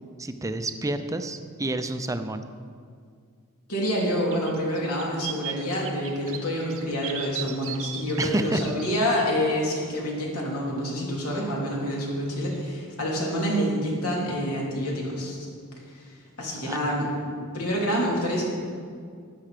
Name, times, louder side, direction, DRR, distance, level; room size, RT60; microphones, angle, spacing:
voice 1, 0.2-2.4 8.2-8.6 16.7-16.8, right 2 dB, 15° right, 9 dB, 0.6 m, -29 dB
voice 2, 3.7-15.5 15.9-18.5, equal, 75° left, -3 dB, 3.2 m, -27 dB
sound 1, 4.0-4.1 4.3-9.7 12.5-12.7, right 10 dB, 65° right, 0.8 m, -38 dB
13.0 x 9.8 x 5.1 m, 2.1 s
head